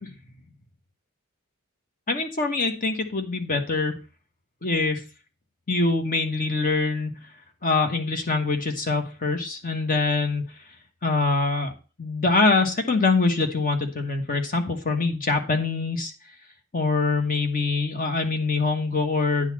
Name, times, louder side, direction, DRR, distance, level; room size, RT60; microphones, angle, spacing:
voice 1, 2.1-3.9 4.6-5.0 5.7-7.2 7.6-10.4 11.0-11.7 12.0-16.1 16.7-19.5, left 3 dB, 40° left, 6 dB, 1.3 m, -24 dB
9.7 x 4.1 x 7.2 m, 0.32 s
head